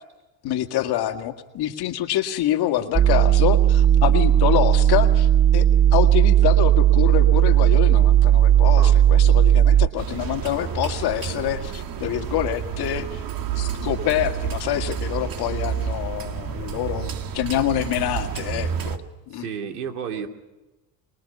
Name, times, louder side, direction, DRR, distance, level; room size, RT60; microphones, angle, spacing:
voice 1, 0.4-13.2 13.6-19.5, left 12 dB, 60° left, 6 dB, 2.0 m, -26 dB
sound 1, 2.9-9.9, right 11 dB, 15° right, 1.0 m, -16 dB
sound 2, 10.0-19.0, right 7 dB, 50° right, 2.0 m, -30 dB
voice 2, 19.3-20.3, right 7 dB, 85° right, 5 dB, 2.8 m, -31 dB
25.0 x 21.0 x 5.5 m, 1.1 s
hypercardioid pair, 70°, 44 cm